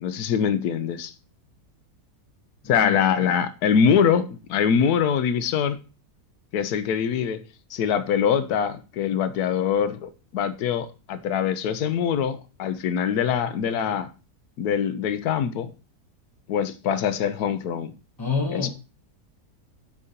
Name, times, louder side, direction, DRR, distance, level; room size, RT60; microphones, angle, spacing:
voice 1, 0.0-1.1 2.7-5.8 6.5-7.4 7.7-14.1 14.6-15.7 16.5-17.9 18.5-18.7, left 7 dB, 80° left, 1.2 m, -23 dB
voice 2, 2.8-3.1 18.2-18.7, left 4 dB, 20° left, 0.7 m, -27 dB
8.3 x 2.8 x 5.1 m
omnidirectional pair, 1.7 m